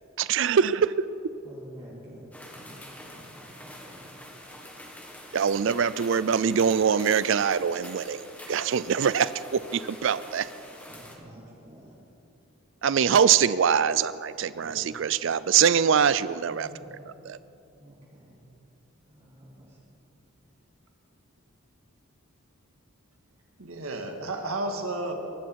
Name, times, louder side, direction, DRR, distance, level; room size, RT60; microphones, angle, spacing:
voice 1, 0.2-1.1 5.3-10.5 12.8-16.7 17.1-17.4, right 7 dB, 60° right, 16 dB, 0.4 m, -23 dB
voice 2, 1.4-4.1 10.9-11.9 16.5-16.9 17.8-18.3 19.1-19.5, equal, 30° right, -7 dB, 2.7 m, -49 dB
sound 1, 2.3-11.2, left 1 dB, 5° left, 1.5 m, -45 dB
voice 3, 14.5-14.9 23.6-25.1, right 2 dB, 80° right, 4 dB, 1.9 m, -33 dB
22.5 x 11.5 x 4.7 m, 2.9 s
head